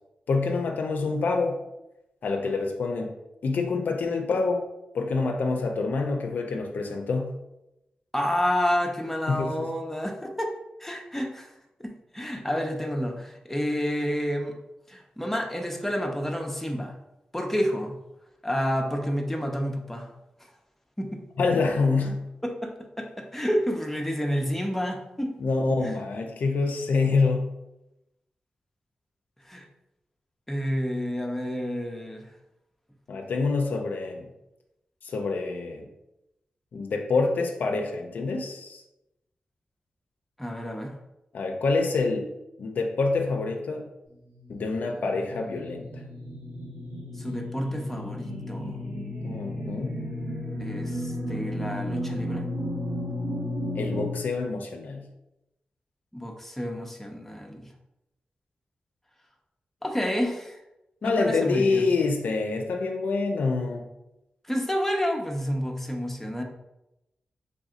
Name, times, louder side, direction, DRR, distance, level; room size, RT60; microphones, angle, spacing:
voice 1, 0.3-1.6 2.2-3.1 3.4-4.6 4.9-7.3 9.3-9.7 21.4-22.2 25.4-27.5 33.1-34.3 35.0-35.9 36.7-38.8 41.3-42.3 42.6-43.9 44.5-46.0 49.2-50.0 53.7-55.1 61.0-63.9, left 3 dB, 80° left, 3 dB, 0.4 m, -26 dB
voice 2, 8.1-10.5 10.8-11.5 11.8-14.6 14.9-17.0 17.3-18.0 18.4-20.1 21.0-21.2 22.4-25.3 25.8-25.9 29.4-29.7 30.5-32.3 40.4-41.0 47.2-48.8 50.6-52.4 56.1-57.7 59.8-60.6 61.0-61.9 64.5-66.4, equal, 10° left, 2 dB, 0.5 m, -29 dB
sound 1, 44.3-54.1, left 1 dB, 75° right, 1.1 m, -33 dB
3.4 x 2.7 x 2.4 m, 0.90 s
cardioid pair, 55°, 3 cm